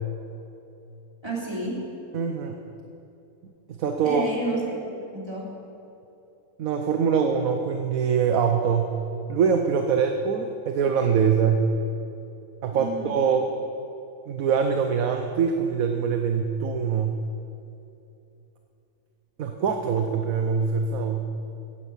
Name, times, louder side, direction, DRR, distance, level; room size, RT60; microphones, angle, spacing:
voice 1, 1.2-1.8 4.0-4.6 5.1-5.5 12.7-13.2, right 2 dB, 15° right, -5 dB, 3.3 m, -30 dB
voice 2, 2.1-2.6 3.7-4.2 6.6-9.0 9.3-11.7 12.6-13.4 14.3-17.2 19.4-21.3, right 6 dB, 65° right, 4 dB, 1.2 m, -23 dB
15.0 x 10.0 x 7.2 m, 2.8 s
omnidirectional pair, 1.6 m